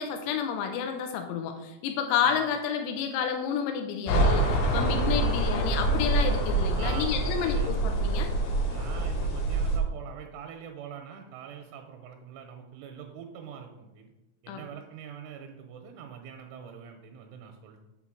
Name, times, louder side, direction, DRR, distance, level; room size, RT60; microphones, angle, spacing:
voice 1, 0.0-8.3 14.5-14.6, left 7 dB, 90° left, 5 dB, 3.3 m, -30 dB
sound 1, 4.1-9.8, right 2 dB, 70° left, 3.2 m, -26 dB
voice 2, 6.8-7.7 8.6-14.1 14.4-17.8, right 8 dB, 85° right, 4 dB, 2.9 m, -44 dB
8.0 x 3.8 x 6.2 m, 0.97 s
omnidirectional pair, 5.8 m